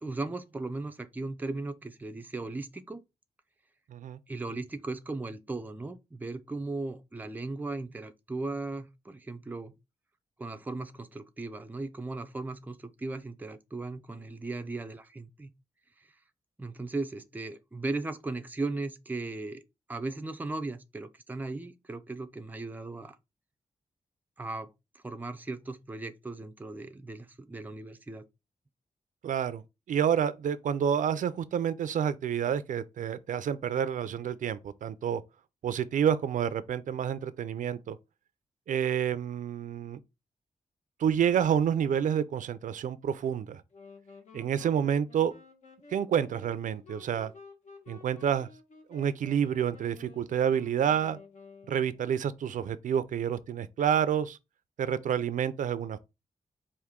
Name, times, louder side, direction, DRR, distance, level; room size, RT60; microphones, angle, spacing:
voice 1, 0.0-3.0 4.3-9.7 10.4-15.5 16.0-16.1 16.6-19.6 19.9-23.2 24.4-24.7 24.9-28.3, right 2 dB, 15° right, 0.4 m, -37 dB
voice 2, 29.2-29.6 29.9-35.2 35.6-38.0 38.7-40.0 41.0-43.6 44.3-45.3 45.9-47.3 47.9-48.5 48.9-51.2 51.7-54.4 54.8-56.0, right 8 dB, 80° right, 0.4 m, -28 dB
sound 1, 43.7-52.2, left 4 dB, 65° left, 1.1 m, -53 dB
4.8 x 2.6 x 3.6 m
wide cardioid pair, 120°, 13 cm